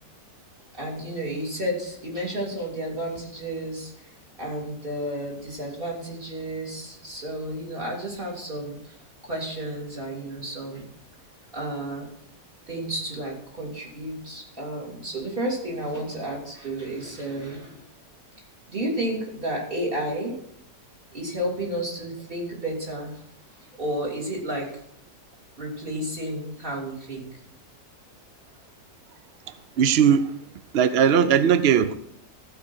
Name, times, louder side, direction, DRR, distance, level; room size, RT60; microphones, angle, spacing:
voice 1, 0.7-4.1 4.4-9.0 9.2-10.9 11.5-12.0 12.7-17.8 18.7-20.3 21.1-23.1 23.6-24.7 25.6-27.3, right 1 dB, 30° right, -2 dB, 3.2 m, -32 dB
voice 2, 29.8-30.3 30.7-32.0, right 8 dB, 85° right, 12 dB, 0.5 m, -18 dB
15.0 x 5.1 x 6.0 m, 0.73 s
omnidirectional pair, 1.8 m